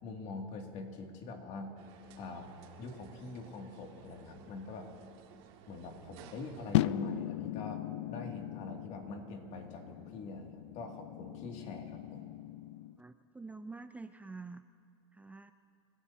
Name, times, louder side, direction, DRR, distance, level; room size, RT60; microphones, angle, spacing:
voice 1, 0.0-1.8 2.2-2.5 2.8-4.9 5.7-12.2, left 2 dB, 50° left, 2 dB, 2.4 m, -44 dB
sound 1, 1.8-6.9, right 8 dB, 70° right, 2.2 m, -57 dB
sound 2, 6.7-13.0, left 14 dB, 85° left, 0.4 m, -37 dB
voice 2, 13.0-14.6 15.1-15.5, right 3 dB, 10° right, 9 dB, 0.4 m, -47 dB
29.5 x 16.0 x 2.8 m, 2.3 s
supercardioid pair, 110°, 15 cm